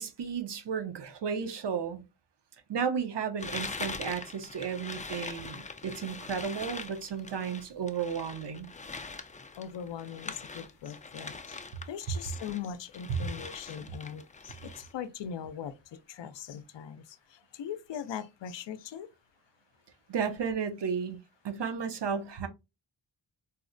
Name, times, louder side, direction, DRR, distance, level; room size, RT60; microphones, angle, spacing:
voice 1, 0.0-2.0 2.7-8.7 20.1-21.2 21.4-22.5, right 6 dB, 65° right, 0.7 m, -33 dB
sound 1, 3.4-12.6 12.9-14.9, left 4 dB, 20° left, 0.3 m, -42 dB
voice 2, 9.5-19.1, left 8 dB, 70° left, 0.5 m, -41 dB
4.1 x 2.1 x 2.5 m
wide cardioid pair, 70°, 45 cm